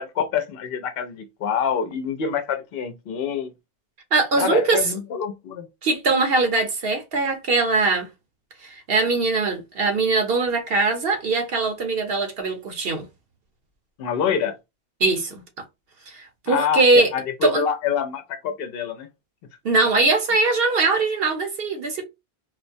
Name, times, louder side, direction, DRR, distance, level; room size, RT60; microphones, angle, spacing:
voice 1, 0.0-3.5 4.4-5.7 14.0-14.6 16.5-16.9 17.1-19.1, left 7 dB, 65° left, 0.8 m, -26 dB
voice 2, 4.1-4.8 5.8-8.1 8.6-13.1 15.0-15.6 16.1-17.1 17.4-17.6 19.6-22.0, right 3 dB, 65° right, 1.1 m, -21 dB
4.3 x 2.1 x 2.6 m
omnidirectional pair, 1.1 m